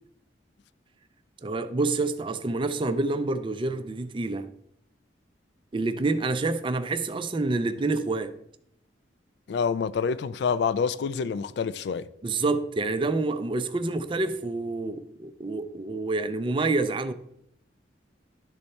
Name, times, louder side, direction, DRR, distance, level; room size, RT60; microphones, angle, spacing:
voice 1, 1.4-4.5 5.7-8.3 12.2-17.1, right 3 dB, 30° right, 0.4 m, -27 dB
voice 2, 9.5-12.1, left 6 dB, 65° left, 0.3 m, -27 dB
11.5 x 4.2 x 3.2 m
head